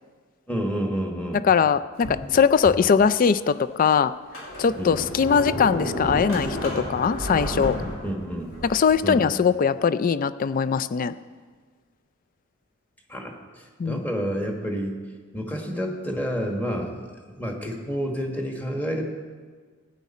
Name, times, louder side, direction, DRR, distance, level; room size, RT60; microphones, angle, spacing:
voice 1, 0.5-1.4 4.8-5.0 8.0-8.5 9.0-9.3 13.1-14.9 15.3-19.0, equal, 10° left, 1 dB, 1.4 m, -29 dB
voice 2, 1.4-4.1 4.6-7.8 8.6-11.1 13.8-14.0, left 6 dB, 40° left, 14 dB, 0.3 m, -21 dB
Sliding door, 2.0-2.9 3.5-3.6 4.1-9.0, equal, 75° left, 3.4 m, -31 dB
15.5 x 9.4 x 4.2 m, 1.5 s
head